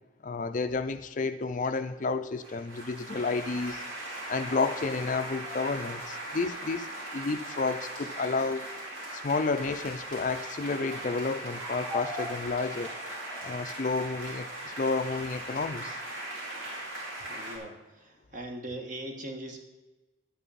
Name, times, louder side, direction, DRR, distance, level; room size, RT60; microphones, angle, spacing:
voice 1, 0.2-3.8 4.3-8.6 9.1-12.9 13.4-16.0, left 4 dB, 40° left, 10 dB, 0.4 m, -31 dB
sound 1, 2.4-17.6, right 1 dB, 85° right, 3.0 m, -39 dB
sound 2, 3.9-6.2 8.5-8.8 10.4-11.0 11.5-13.5, left 1 dB, 15° right, 2.6 m, -44 dB
voice 2, 17.3-19.6, right 1 dB, 40° right, 3 dB, 1.3 m, -40 dB
11.5 x 9.0 x 4.1 m, 1.2 s
head